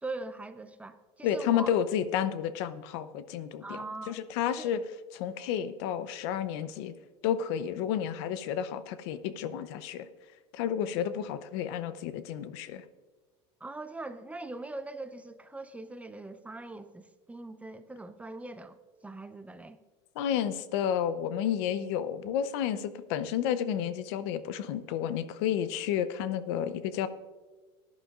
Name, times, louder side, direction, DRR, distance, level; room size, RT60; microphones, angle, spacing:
voice 1, 0.0-1.7 3.6-4.2 4.5-4.7 13.6-18.8 19.0-19.8, right 2 dB, 10° right, 11 dB, 0.5 m, -41 dB
voice 2, 1.2-3.8 4.1-4.8 5.1-6.9 7.2-10.1 10.5-12.8 20.2-27.1, left 9 dB, 70° left, 13 dB, 0.7 m, -31 dB
16.5 x 10.5 x 2.5 m, 1.3 s
supercardioid pair, 120°, 15 cm